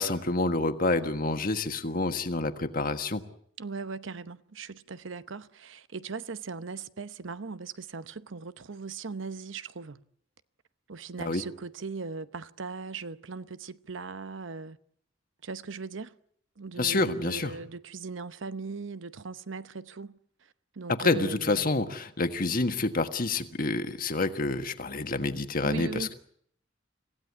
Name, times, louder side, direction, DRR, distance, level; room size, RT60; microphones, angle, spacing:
voice 1, 0.0-3.2 11.2-11.4 16.8-17.5 20.9-26.1, left 2 dB, 50° left, 1.5 m, -28 dB
voice 2, 3.6-10.0 10.9-14.8 15.4-16.1 16.6-20.2 20.8-21.7 25.6-26.1, right 4 dB, 85° right, 0.9 m, -39 dB
26.0 x 16.0 x 8.5 m
head